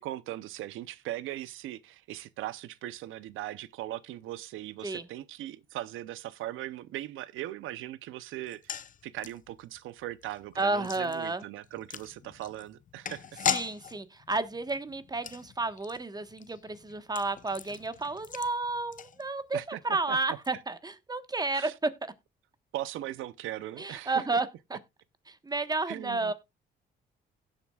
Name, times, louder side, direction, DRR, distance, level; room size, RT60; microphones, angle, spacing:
voice 1, 0.0-13.4 19.5-19.8 20.1-20.4 21.5-21.7 22.7-24.2 25.9-26.3, right 14 dB, 90° right, 0.7 m, -39 dB
sound 1, 8.4-19.7 19.9-20.0 20.3-20.5, left 8 dB, 40° left, 0.7 m, -39 dB
voice 2, 10.6-11.4 13.5-19.6 19.8-22.1 23.8-24.8 25.3-26.3, right 3 dB, 20° right, 1.2 m, -31 dB
17.0 x 7.5 x 2.3 m
cardioid pair, 90°, 20 cm